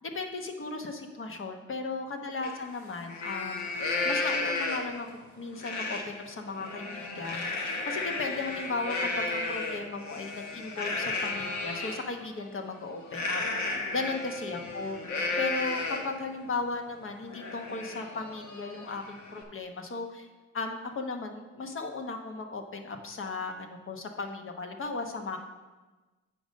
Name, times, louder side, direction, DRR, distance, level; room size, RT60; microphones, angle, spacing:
voice 1, 0.0-3.6 4.0-5.1 5.3-13.4 13.8-15.0 15.4-20.3 20.5-25.4, left 3 dB, 45° left, 5 dB, 1.1 m, -36 dB
Livestock farm animals working animals, 2.4-2.5 2.9-5.0 5.6-6.0 6.4-12.0 13.1-16.2 16.6-16.7 17.1-19.4, left 3 dB, 65° left, 1.4 m, -33 dB
8.2 x 5.3 x 5.3 m, 1.2 s
cardioid pair, 90°, 30 cm